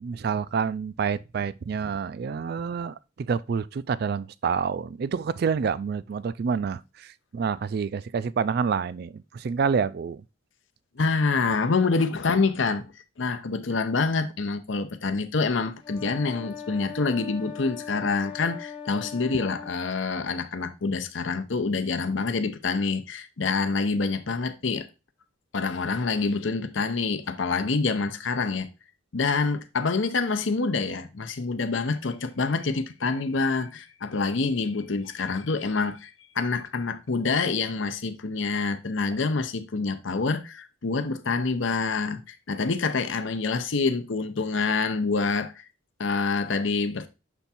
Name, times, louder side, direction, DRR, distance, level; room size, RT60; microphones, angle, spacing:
voice 1, 0.0-10.2, right 6 dB, 50° right, 0.3 m, -28 dB
voice 2, 11.0-12.9 13.2-24.9 25.5-28.7 29.1-45.6 46.0-47.1, left 4 dB, 70° left, 0.7 m, -26 dB
sound 1, 15.8-19.8, left 6 dB, 25° left, 0.6 m, -40 dB
7.1 x 3.5 x 4.2 m
head